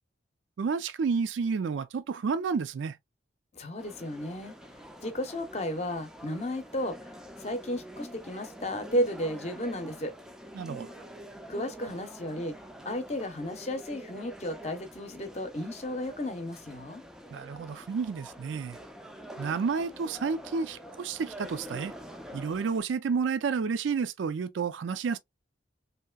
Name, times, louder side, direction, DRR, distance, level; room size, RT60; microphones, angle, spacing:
voice 1, 0.6-3.0 10.5-10.9 17.3-18.8 19.4-21.9 22.3-25.2, right 5 dB, 75° right, 0.4 m, -30 dB
voice 2, 3.5-4.5 5.0-10.1 11.5-12.5 12.8-17.0, equal, 35° left, 0.7 m, -33 dB
sound 1, 3.8-22.8, equal, 5° right, 0.3 m, -46 dB
3.1 x 2.8 x 2.2 m
head